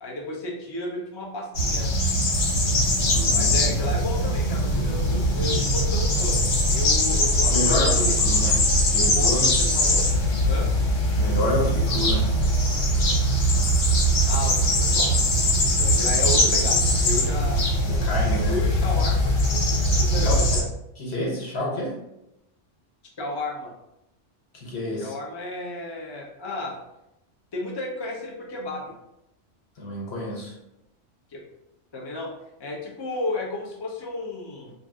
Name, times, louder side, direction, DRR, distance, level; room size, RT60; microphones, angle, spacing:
voice 1, 0.0-1.9 3.3-6.4 6.7-8.2 8.9-10.0 10.4-10.7 14.3-15.1 15.5-17.7 18.2-19.7 20.0-20.6 23.2-23.7 25.0-26.8 27.5-29.0 31.3-31.4 31.9-32.3 32.6-34.7, left 2 dB, 40° left, -2 dB, 0.4 m, -33 dB
sound 1, 1.5-20.6, equal, 90° left, 1.2 m, -21 dB
voice 2, 3.0-3.8 7.1-8.7 8.9-9.5 11.1-12.4 17.9-18.6 20.2-20.6 21.0-22.0 24.5-25.1 29.8-30.5, left 1 dB, 60° left, -2 dB, 1.1 m, -29 dB
2.5 x 2.4 x 3.5 m, 0.85 s
omnidirectional pair, 1.3 m